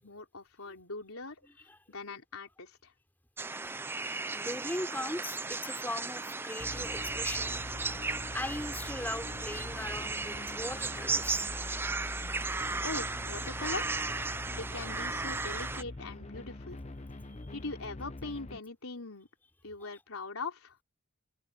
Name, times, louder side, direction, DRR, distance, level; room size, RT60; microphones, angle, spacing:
voice 1, 0.0-1.4 1.9-2.9 12.8-14.1 14.5-16.8 17.5-19.3 19.6-20.8, left 3 dB, 85° left, 3.8 m, -41 dB
voice 2, 1.4-1.8 4.3-7.8 8.3-11.5 17.3-17.5, left 1 dB, 10° left, 4.2 m, -39 dB
sound 1, 3.4-15.8, right 3 dB, 10° right, 0.4 m, -35 dB
sound 2, 6.0-18.4 18.7-18.9, right 3 dB, 85° right, 6.8 m, -60 dB
sound 3, 6.6-18.6, left 2 dB, 30° left, 0.8 m, -44 dB
open air
head